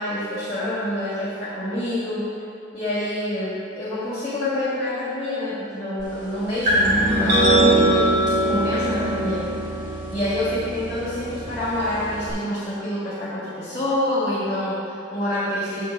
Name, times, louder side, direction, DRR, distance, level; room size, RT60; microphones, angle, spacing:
voice 1, 0.0-2.3 2.7-9.5 10.1-15.9, left 1 dB, 25° left, -12 dB, 1.7 m, -27 dB
sound 1, 6.7-12.3, right 1 dB, 40° right, 1.7 m, -22 dB
6.9 x 3.9 x 6.0 m, 2.6 s
head